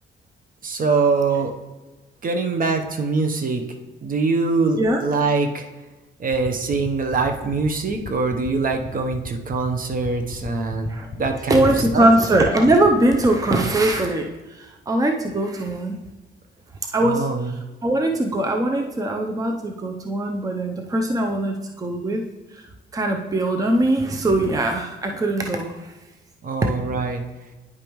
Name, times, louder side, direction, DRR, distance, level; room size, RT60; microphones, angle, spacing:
voice 1, 0.6-1.5 2.2-3.6 4.0-5.6 6.2-12.1 17.0-17.6 26.4-27.2, right 4 dB, 45° right, 5 dB, 0.8 m, -23 dB
sound 1, 6.3-14.0, left 6 dB, 30° left, 0.7 m, -34 dB
voice 2, 11.5-16.0 16.9-22.2 22.5-25.9, right 1 dB, 15° right, 3 dB, 0.6 m, -21 dB
9.8 x 5.1 x 3.1 m, 1.1 s
cardioid pair, 90°, 20 cm